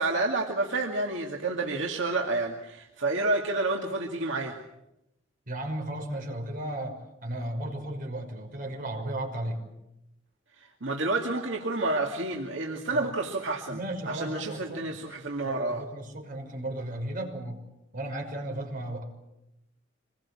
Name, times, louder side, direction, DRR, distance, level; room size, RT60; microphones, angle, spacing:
voice 1, 0.0-4.6 10.6-13.8 14.1-15.8, right 2 dB, 70° right, 1 dB, 2.3 m, -29 dB
voice 2, 5.5-9.6 12.9-13.1 13.7-15.0 15.4-17.6 17.9-19.0, right 1 dB, 45° right, 2 dB, 5.8 m, -35 dB
26.0 x 21.5 x 8.6 m, 0.90 s
head